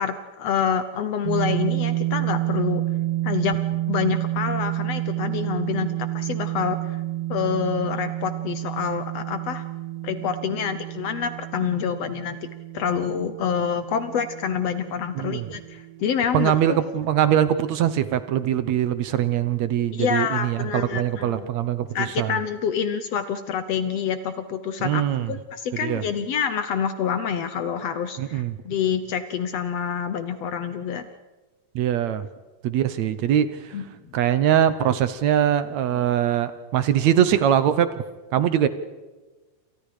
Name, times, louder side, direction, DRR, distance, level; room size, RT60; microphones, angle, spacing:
voice 1, 0.0-2.8 3.2-3.6 3.9-7.0 7.3-9.6 10.0-12.5 12.7-16.8 19.9-21.5 21.9-31.1 33.7-33.8, left 7 dB, 65° left, 11 dB, 1.7 m, -27 dB
sound 1, 1.2-17.2, right 15 dB, 45° right, 3.8 m, -29 dB
voice 2, 15.2-15.5 16.3-22.4 24.8-25.3 25.8-26.0 28.2-28.6 31.8-32.3 32.6-33.8 34.1-38.0 38.3-38.7, right 10 dB, 70° right, 13 dB, 2.0 m, -22 dB
29.0 x 27.5 x 5.0 m, 1.2 s
omnidirectional pair, 3.6 m